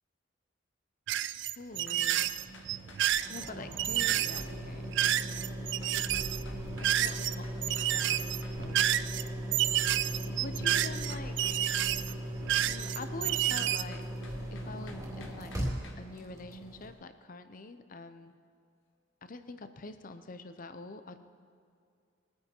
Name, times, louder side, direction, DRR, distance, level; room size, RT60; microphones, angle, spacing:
sound 1, 1.1-7.3 7.6-13.8, right 12 dB, 65° right, 0.4 m, -30 dB
voice 1, 1.6-2.4 3.3-5.6 5.9-6.1 6.8-8.3 8.5-8.8 9.9-11.4 12.5-14.1 14.5-15.5 16.0-18.3 19.2-21.2, left 3 dB, 45° left, 10 dB, 0.7 m, -45 dB
sound 2, 1.7-16.9, equal, 20° right, 2.4 m, -39 dB
sound 3, 1.9-3.4 5.8-8.9 11.1-12.2 13.3-16.0, left 4 dB, 80° left, 1.5 m, -54 dB
20.5 x 9.4 x 4.5 m, 2.4 s
head